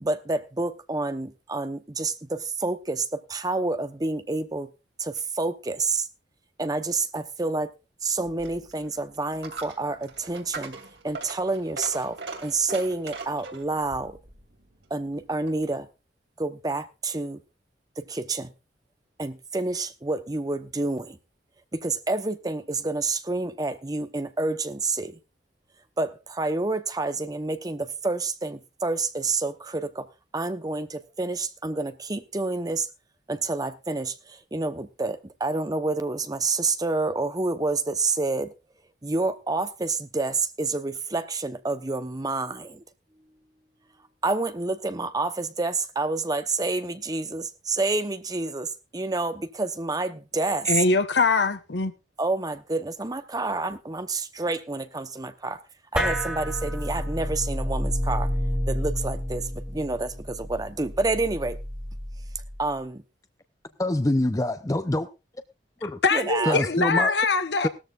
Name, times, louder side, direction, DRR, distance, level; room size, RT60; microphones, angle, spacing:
voice 1, 0.0-4.7 5.0-6.1 6.6-7.7 8.0-10.8 11.0-14.2 14.9-15.9 16.4-17.4 18.0-18.5 19.2-21.2 21.7-25.2 26.0-30.1 30.3-32.9 33.3-38.5 39.0-42.8 44.2-50.7 52.2-55.6 55.9-58.3 58.7-61.6 62.6-63.0 66.1-66.6, right 3 dB, 20° right, 0.9 m, -28 dB
Coin (dropping), 8.2-15.7, right 3 dB, 85° right, 2.8 m, -41 dB
voice 2, 50.7-51.9 66.0-67.7, left 4 dB, 70° left, 1.1 m, -22 dB
sound 1, 55.9-62.7, equal, 5° right, 3.3 m, -30 dB
voice 3, 63.8-65.1 65.8-66.0 66.4-67.1 67.6-67.7, left 1 dB, 20° left, 0.6 m, -25 dB
18.0 x 13.5 x 2.4 m
head